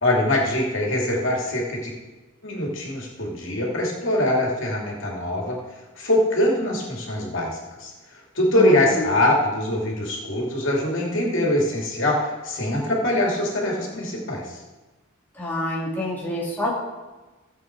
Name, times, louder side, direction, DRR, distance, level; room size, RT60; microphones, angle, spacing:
voice 1, 0.0-1.9 2.4-5.6 6.0-14.6, left 1 dB, 65° left, -2 dB, 2.8 m, -23 dB
voice 2, 8.5-9.1 15.3-16.7, left 1 dB, 10° left, -5 dB, 2.1 m, -27 dB
15.5 x 7.8 x 4.7 m, 1.2 s
head